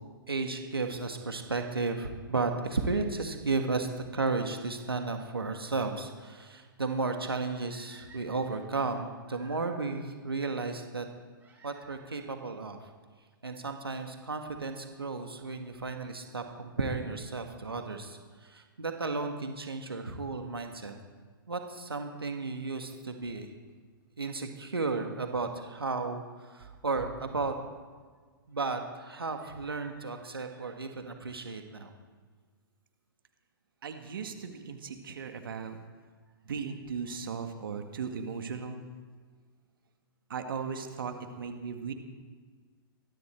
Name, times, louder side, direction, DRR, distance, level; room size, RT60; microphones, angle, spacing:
voice 1, 0.3-11.0 11.6-12.8 13.4-21.0 21.5-23.5 24.2-27.5 28.5-31.9, right 3 dB, 85° right, 5 dB, 1.6 m, -34 dB
sound 1, 7.7-9.9 11.4-12.4 13.4-13.5 14.1-14.2 14.4-14.5 16.4-16.7 19.5-19.6 20.6-20.7 22.2-22.3 22.5-22.6 22.9-23.0 23.2-23.3 23.4-23.5 23.7-23.8 24.0-24.1, right 3 dB, 15° right, 6.0 m, -58 dB
voice 2, 33.8-35.8 36.5-38.9 40.3-41.9, right 6 dB, 65° right, 6 dB, 1.7 m, -37 dB
21.5 x 13.0 x 4.4 m, 1.5 s
figure-of-eight pair, 110°, 12 cm